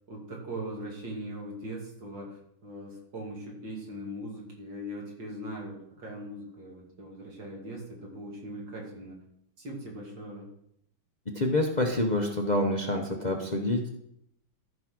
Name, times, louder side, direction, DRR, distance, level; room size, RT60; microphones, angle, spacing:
voice 1, 0.1-9.2 9.6-10.5, right 1 dB, 65° right, -2 dB, 3.4 m, -40 dB
voice 2, 11.3-13.9, left 1 dB, 35° left, 2 dB, 0.8 m, -27 dB
13.5 x 4.8 x 6.1 m, 0.74 s
omnidirectional pair, 2.2 m